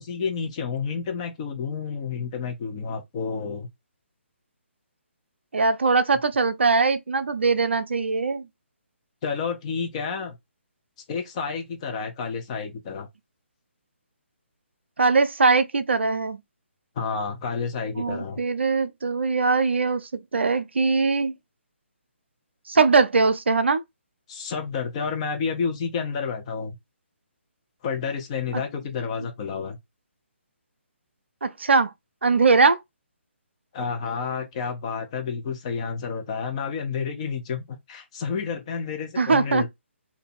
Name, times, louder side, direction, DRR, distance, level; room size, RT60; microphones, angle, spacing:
voice 1, 0.0-3.7 9.2-10.4 11.1-13.1 17.0-18.4 24.3-26.7 27.8-29.8 33.7-39.7, left 5 dB, 30° left, 0.9 m, -30 dB
voice 2, 5.5-8.4 15.0-16.4 18.0-21.3 22.7-23.8 28.5-28.6 31.4-31.9 32.2-32.8 39.2-39.7, right 4 dB, 60° right, 0.5 m, -21 dB
2.9 x 2.6 x 4.3 m
figure-of-eight pair, 140°, 7 cm